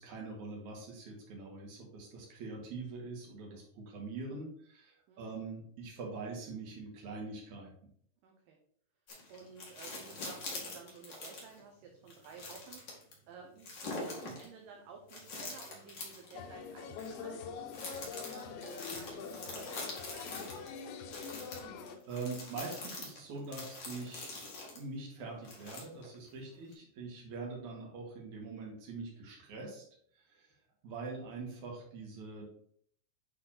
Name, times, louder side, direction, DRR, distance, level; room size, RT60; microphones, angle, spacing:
voice 1, 0.0-7.7 22.1-29.8 30.1-30.5 30.8-32.5, right 3 dB, 55° right, -1 dB, 3.1 m, -43 dB
voice 2, 5.1-5.4 8.2-8.6 9.3-13.0 13.3-20.6 26.4-26.8, right 5 dB, 75° right, 1 dB, 2.5 m, -53 dB
sound 1, 9.1-11.6 12.1-13.1 13.6-14.4 15.1-16.4 17.0-17.1 17.7-20.7 21.1-24.8 25.4-26.2 26.7-26.8, left 2 dB, 35° left, 2.0 m, -44 dB
sound 2, 16.3-22.0, left 5 dB, 85° left, 2.9 m, -44 dB
9.0 x 4.2 x 4.3 m, 0.64 s
omnidirectional pair, 4.4 m